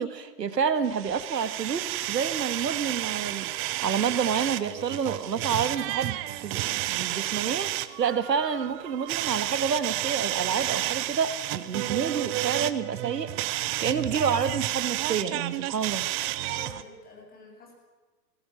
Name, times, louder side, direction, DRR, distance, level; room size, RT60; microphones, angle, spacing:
voice 1, 0.0-7.7 8.0-13.3 13.8-16.1, right 6 dB, 85° right, 12 dB, 1.9 m, -29 dB
sound 1, 0.8-16.8, right 16 dB, 25° right, 0.9 m, -31 dB
voice 2, 16.5-17.7, left 3 dB, 20° left, 0 dB, 7.6 m, -47 dB
21.5 x 18.0 x 9.0 m, 1.3 s
hypercardioid pair, 125°, 48 cm